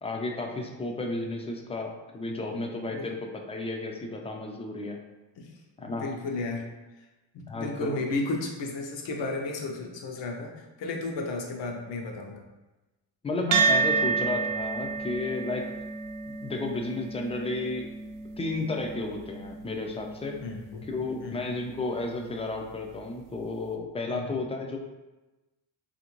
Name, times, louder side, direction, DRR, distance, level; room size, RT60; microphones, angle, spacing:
voice 1, 0.0-3.2 3.5-5.0 5.8-6.1 7.5-8.0 13.2-15.6 16.3-17.9 18.4-20.4 20.9-24.8, left 2 dB, 15° left, 2 dB, 0.4 m, -32 dB
voice 2, 5.8-6.7 7.3-12.4 20.4-20.8 21.2-21.4 24.1-24.2, left 3 dB, 70° left, 1 dB, 0.8 m, -33 dB
sound 1, 13.5-22.2, right 5 dB, 80° right, 0.6 m, -31 dB
3.4 x 2.5 x 2.9 m, 1.1 s
cardioid pair, 90°, 45 cm